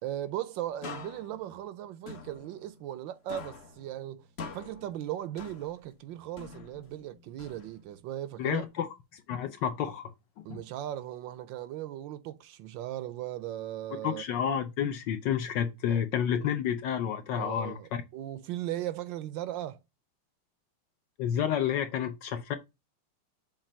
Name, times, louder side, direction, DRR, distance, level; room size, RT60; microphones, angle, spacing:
voice 1, 0.0-4.3 4.5-8.7 10.4-14.2 15.9-16.0 17.3-19.8, right 12 dB, 75° right, 1.2 m, -37 dB
sound 1, 0.8-3.0 3.3-6.0 6.4-8.0, left 5 dB, 50° left, 0.7 m, -46 dB
voice 2, 8.4-10.1 10.5-10.6 14.0-18.0 21.2-22.6, left 9 dB, 70° left, 1.2 m, -30 dB
7.3 x 2.6 x 5.0 m
omnidirectional pair, 2.4 m